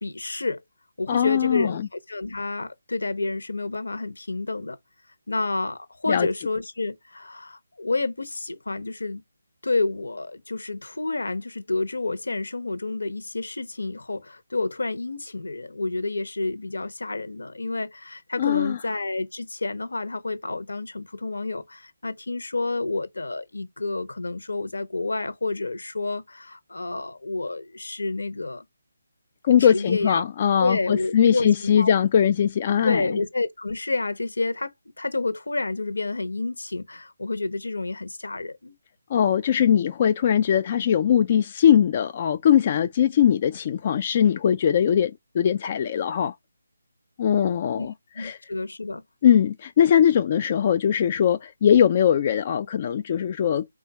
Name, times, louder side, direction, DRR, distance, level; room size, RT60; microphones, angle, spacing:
voice 1, 0.0-0.6 1.0-4.8 5.3-9.2 9.6-28.6 29.6-30.3 30.6-31.9 32.8-38.8 47.7-47.9 48.2-49.0, left 3 dB, 75° left, 0.8 m, -29 dB
voice 2, 1.1-1.9 6.1-6.3 18.4-18.8 29.4-33.0 39.1-46.3 47.2-48.4 49.2-53.7, left 9 dB, 35° left, 0.3 m, -21 dB
3.8 x 2.4 x 4.1 m
figure-of-eight pair, 150°, 0 cm